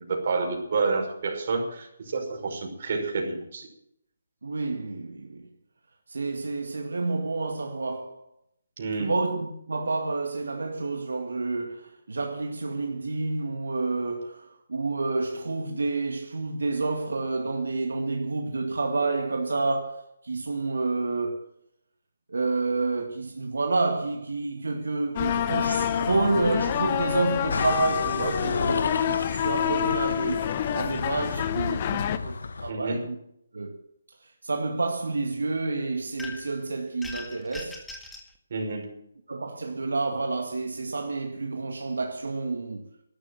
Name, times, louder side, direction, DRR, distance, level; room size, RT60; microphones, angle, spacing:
voice 1, 0.1-3.7 8.8-9.1 32.7-33.0 38.5-38.9, right 4 dB, 50° right, 5.7 m, -29 dB
voice 2, 4.4-5.5 6.1-8.2 9.0-21.4 22.3-33.2 33.5-33.8 34.2-37.8 39.3-42.8, right 3 dB, 80° right, 2.0 m, -29 dB
sound 1, 25.2-32.2, left 10 dB, 35° left, 1.0 m, -27 dB
sound 2, 27.5-32.7, left 4 dB, 70° left, 1.2 m, -34 dB
sound 3, 36.2-36.6 37.0-38.3, left 3 dB, 5° left, 2.0 m, -40 dB
12.5 x 12.0 x 7.8 m
hypercardioid pair, 155°, 0 cm